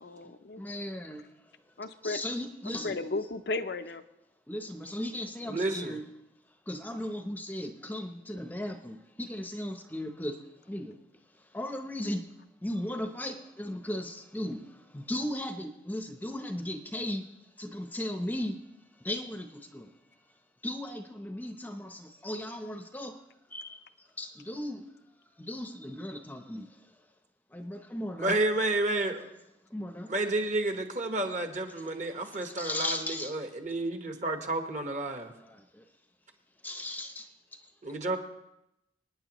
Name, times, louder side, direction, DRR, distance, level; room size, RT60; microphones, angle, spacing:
voice 1, 0.0-0.6 1.8-2.2 2.8-4.0, left 3 dB, 60° left, 9 dB, 0.6 m, -34 dB
voice 2, 0.6-1.2 2.0-3.0 4.5-6.0 6.7-10.3 10.7-10.9 11.5-12.2 12.6-14.6 14.9-17.2 17.6-18.6 19.0-19.5 19.7-19.9 20.6-23.2 23.5-23.8 24.2-24.8 25.4-26.7 27.5-28.4 29.7-30.1 32.6-33.3 35.4-35.6 36.6-37.3, left 1 dB, 10° left, 6 dB, 0.7 m, -36 dB
voice 3, 5.5-6.0 28.2-29.3 30.1-35.3 37.8-38.2, right 2 dB, 40° right, 5 dB, 1.2 m, -30 dB
25.5 x 9.6 x 3.0 m, 0.88 s
head